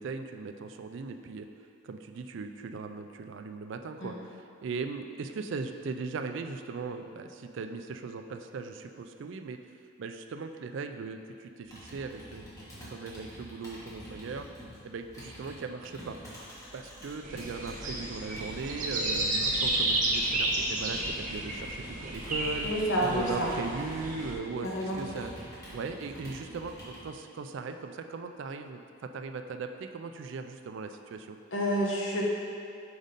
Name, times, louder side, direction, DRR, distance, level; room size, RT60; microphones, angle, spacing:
voice 1, 0.0-1.5 1.8-9.6 10.0-12.4 12.9-14.5 14.8-16.2 16.7-22.7 23.0-25.3 25.7-31.4, right 4 dB, 60° right, 7 dB, 0.3 m, -38 dB
Computer keyboard, 11.7-17.8 18.3-27.1, equal, 15° left, 1.3 m, -47 dB
sound 1, 17.2-24.3, right 1 dB, 40° right, 0.8 m, -32 dB
voice 2, 22.6-23.5 24.6-25.0 31.5-32.2, equal, 65° left, -3 dB, 1.0 m, -29 dB
5.1 x 4.0 x 5.2 m, 2.5 s
head